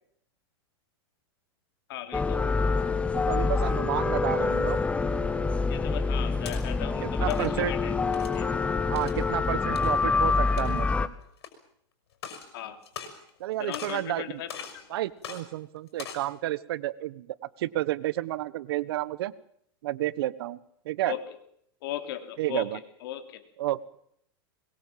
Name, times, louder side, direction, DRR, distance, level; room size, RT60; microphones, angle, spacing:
voice 1, 1.9-2.4 5.7-7.9 8.3-8.4 12.5-12.8 13.6-14.8 21.0-21.2 21.8-22.7 23.0-23.4, left 12 dB, 60° left, 8 dB, 3.2 m, -36 dB
sound 1, 2.1-11.1, left 4 dB, 10° left, 1.1 m, -26 dB
voice 2, 3.1-4.8 7.0-7.7 8.9-11.1 13.4-14.4 14.9-19.3 19.8-20.6 20.8-21.2 22.4-22.8 23.6-23.8, right 15 dB, 70° right, 18 dB, 1.3 m, -31 dB
sound 2, 6.3-6.6 7.1-7.5 8.1-8.4 9.0-9.2 9.8-9.9 10.5-10.9 11.4-11.5 12.1-12.5 12.8-13.4 13.7-14.1 14.5-14.8 15.2-15.4 15.9-16.3, left 7 dB, 90° left, 5.9 m, -41 dB
22.0 x 22.0 x 7.5 m, 0.69 s
supercardioid pair, 145°, 13 cm